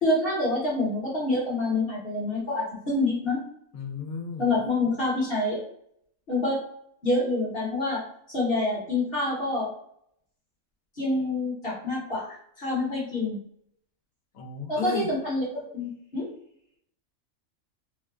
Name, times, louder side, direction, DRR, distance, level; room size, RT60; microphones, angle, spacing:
voice 1, 0.0-3.4 4.4-5.6 6.3-6.6 7.0-8.0 8.3-9.7 11.0-13.4 14.7-16.3, left 2 dB, 45° left, -6 dB, 1.1 m, -27 dB
voice 2, 3.7-4.6 14.3-15.2, left 5 dB, 85° left, 1 dB, 1.1 m, -34 dB
3.7 x 2.2 x 2.4 m, 0.67 s
omnidirectional pair, 1.4 m